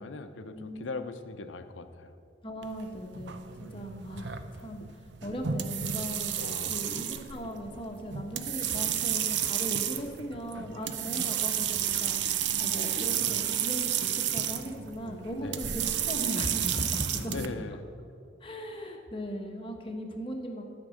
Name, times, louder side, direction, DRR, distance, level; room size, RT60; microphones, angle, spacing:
voice 1, 0.0-2.1 4.8-4.9 6.4-6.8 15.4-15.6 17.0-17.8, left 3 dB, 90° left, 9 dB, 0.7 m, -40 dB
voice 2, 0.5-0.9 2.4-4.8 5.2-17.5 18.4-20.6, equal, 30° left, 2 dB, 1.2 m, -38 dB
sound 1, 2.6-17.5, right 10 dB, 70° right, 0.6 m, -32 dB
13.0 x 5.4 x 7.7 m, 2.5 s
head